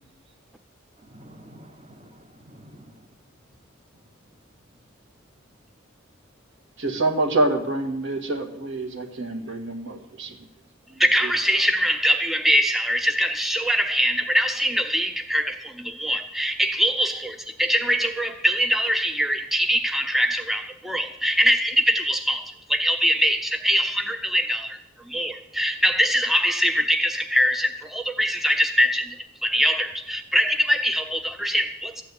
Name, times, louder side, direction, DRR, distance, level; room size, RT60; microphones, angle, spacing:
voice 1, 1.0-3.2 4.0-4.4, equal, 30° right, 1.0 m, -49 dB
voice 2, 6.8-10.4 11.2-11.3, right 2 dB, 60° right, 2.0 m, -26 dB
voice 3, 11.0-24.8 25.1-32.0, equal, ahead, 0.5 m, -23 dB
14.0 x 9.0 x 8.4 m
head